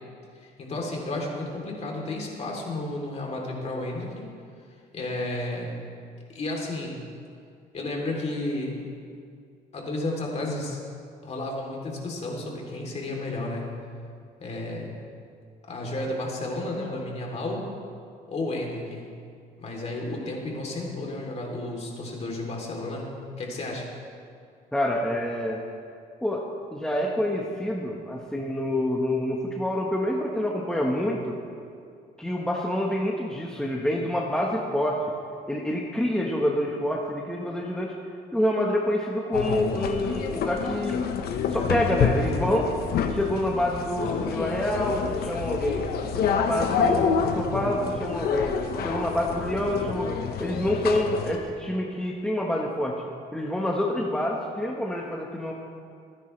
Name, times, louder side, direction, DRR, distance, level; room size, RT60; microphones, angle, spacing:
voice 1, 0.4-4.2 4.9-5.7 6.3-7.0 7.7-8.9 9.7-10.8 11.2-13.7 14.4-14.9 15.7-17.6 18.3-19.1 19.6-23.1 23.4-23.9, left 2 dB, 40° left, -1 dB, 3.4 m, -32 dB
voice 2, 24.7-25.6 26.2-26.4 26.7-31.3 32.2-35.0 35.5-37.9 38.3-41.0 41.5-42.7 43.1-45.9 46.1-48.6 48.8-52.9 53.3-55.5, left 1 dB, 5° left, -2 dB, 1.3 m, -27 dB
sound 1, 39.3-51.4, left 6 dB, 65° left, 1.2 m, -28 dB
26.5 x 10.0 x 3.4 m, 2.4 s
cardioid pair, 110°, 17 cm